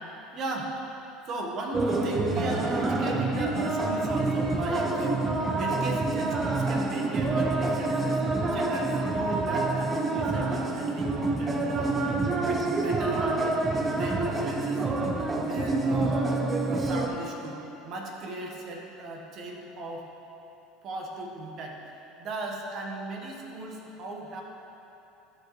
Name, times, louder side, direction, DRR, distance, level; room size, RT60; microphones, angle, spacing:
voice 1, 0.3-0.8 1.3-5.2 5.5-8.2 8.5-12.0 12.4-13.5 13.9-14.8 15.3-16.4 16.7-20.1 20.8-21.8 22.2-24.4, right 2 dB, 50° right, 1 dB, 1.3 m, -37 dB
sound 1, 1.7-17.1, right 2 dB, 25° right, 0.8 m, -27 dB
13.0 x 5.0 x 3.2 m, 3.0 s
hypercardioid pair, 80°, 0 cm